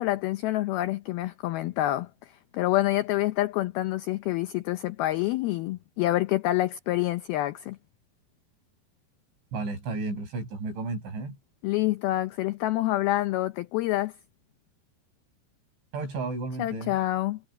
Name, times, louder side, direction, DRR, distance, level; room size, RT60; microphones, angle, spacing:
voice 1, 0.0-7.8 11.6-14.1 16.6-17.4, left 16 dB, 85° left, 2.1 m, -27 dB
voice 2, 9.5-11.4 15.9-16.9, right 3 dB, 85° right, 10.5 m, -33 dB
omnidirectional pair, 5.2 m